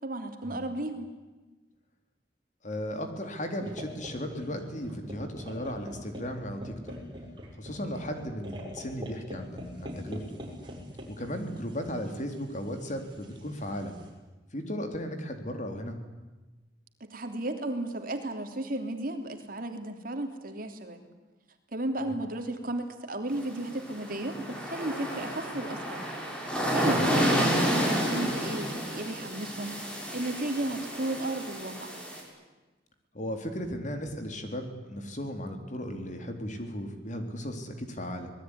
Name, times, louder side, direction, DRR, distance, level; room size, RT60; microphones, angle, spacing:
voice 1, 0.0-1.1 17.0-21.0 21.7-26.1 26.7-31.9, right 1 dB, 55° right, 6 dB, 3.2 m, -34 dB
voice 2, 2.6-6.9 7.6-10.4 11.1-13.9 14.5-16.0 22.0-22.1 26.9-27.1 33.1-38.3, equal, 45° left, 6 dB, 3.7 m, -36 dB
sound 1, 3.6-14.1, equal, 25° right, 6.5 m, -44 dB
sound 2, 23.3-32.2, equal, 5° left, 6.6 m, -30 dB
26.0 x 20.0 x 10.0 m, 1.2 s
head